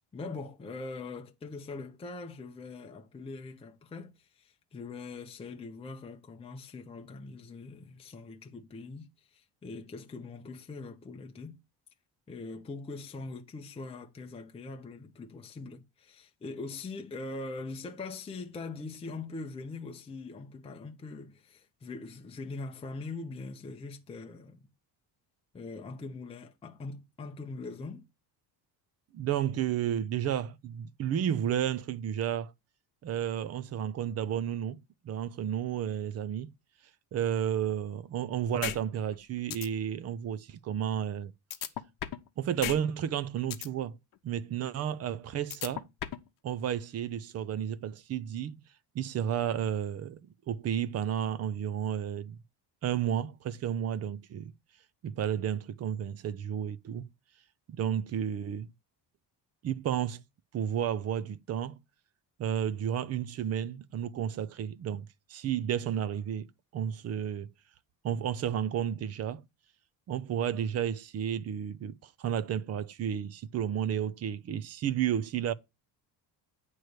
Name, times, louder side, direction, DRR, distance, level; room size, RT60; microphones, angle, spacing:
voice 1, 0.1-11.6 12.3-24.6 25.5-28.0, left 3 dB, 15° left, 0.6 m, -42 dB
voice 2, 29.1-32.5 33.0-34.8 35.0-36.5 37.1-41.3 42.4-44.0 44.2-45.8 46.4-48.6 48.9-52.4 52.8-54.5 55.0-57.1 57.7-58.7 59.6-60.2 60.5-61.8 62.4-66.5 66.7-67.5 68.0-69.4 70.1-75.5, right 9 dB, 40° right, 0.5 m, -32 dB
sound 1, 38.6-38.8 39.1-39.2 39.5-39.7 41.5-42.3 42.6-42.8 43.1-43.7 45.5-46.3, left 12 dB, 50° left, 0.8 m, -34 dB
9.2 x 3.2 x 6.5 m
cardioid pair, 170°, 42 cm